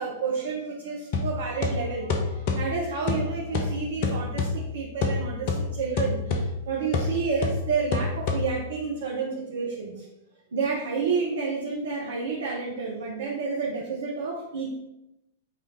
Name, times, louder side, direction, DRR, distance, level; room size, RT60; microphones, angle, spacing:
voice 1, 0.0-10.0 10.5-14.7, right 5 dB, 60° right, -2 dB, 1.2 m, -30 dB
sound 1, 1.1-8.8, left 3 dB, 45° left, 1.2 m, -29 dB
8.7 x 3.7 x 4.1 m, 0.88 s
figure-of-eight pair, 100°, 0 cm